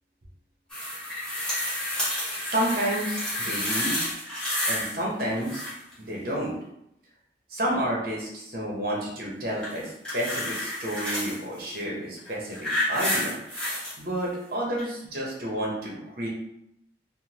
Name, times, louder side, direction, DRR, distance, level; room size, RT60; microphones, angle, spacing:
sound 1, 0.7-4.9 5.2-5.9 9.6-11.4 12.2-13.9 14.8-14.9, left 1 dB, 5° left, 1.0 m, -30 dB
voice 1, 2.2-4.0 4.7-5.6 6.0-6.5 7.5-13.4 14.0-16.3, right 1 dB, 55° right, -3 dB, 0.9 m, -30 dB
3.5 x 2.1 x 2.9 m, 0.78 s
head